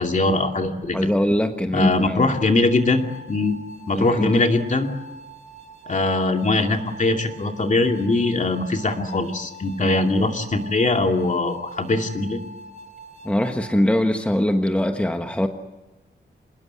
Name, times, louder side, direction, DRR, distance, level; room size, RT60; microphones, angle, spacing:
voice 1, 0.0-1.0 1.7-3.0 3.3-3.6 3.9-4.9 5.9-12.4, left 2 dB, 45° left, 4 dB, 2.6 m, -21 dB
voice 2, 0.9-2.3 3.9-4.3 9.8-10.0 13.2-15.5, left 1 dB, 5° left, 5 dB, 1.4 m, -22 dB
sound 1, 2.5-13.8, right 1 dB, 30° right, 2.2 m, -43 dB
27.0 x 20.0 x 9.8 m, 1.1 s
wide cardioid pair, 145°, 18 cm